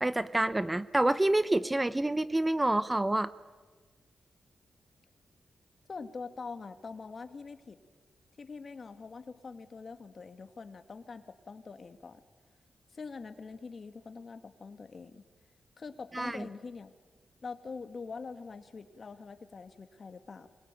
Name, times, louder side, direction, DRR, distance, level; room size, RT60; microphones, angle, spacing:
voice 1, 0.0-3.3 16.1-16.5, right 1 dB, 20° right, 15 dB, 0.8 m, -27 dB
voice 2, 5.9-7.8 8.4-12.2 12.9-15.2 15.8-16.9 17.4-20.5, left 4 dB, 55° left, 9 dB, 2.1 m, -44 dB
26.0 x 22.0 x 9.3 m, 1.4 s
cardioid pair, 70°, 0 cm